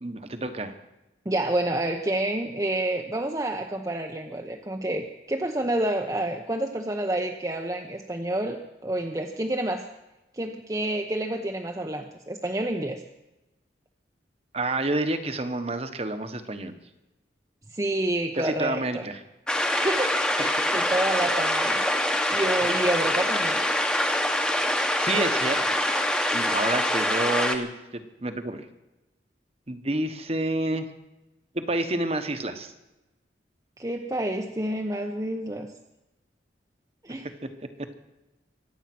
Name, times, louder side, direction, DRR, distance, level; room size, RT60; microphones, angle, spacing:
voice 1, 0.0-0.7 14.5-16.7 18.4-19.2 25.0-25.7 26.3-28.6 29.7-30.8 31.5-32.7 37.4-37.5, right 2 dB, 35° right, 8 dB, 1.2 m, -29 dB
voice 2, 1.3-9.9 10.3-13.0 17.7-19.0 19.8-21.8 22.3-23.6 33.8-35.7 37.0-37.3, right 1 dB, 20° right, 3 dB, 0.8 m, -29 dB
sound 1, 19.5-27.5, left 1 dB, 5° left, 1.1 m, -25 dB
24.0 x 8.9 x 6.1 m, 0.98 s
head